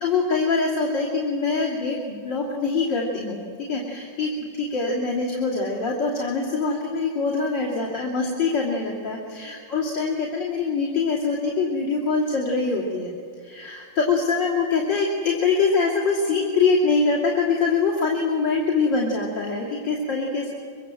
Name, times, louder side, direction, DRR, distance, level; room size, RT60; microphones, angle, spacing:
voice 1, 0.0-3.4 3.7-13.1 13.4-20.5, left 4 dB, 80° left, -6 dB, 3.6 m, -24 dB
24.5 x 24.0 x 7.7 m, 2.2 s
omnidirectional pair, 1.9 m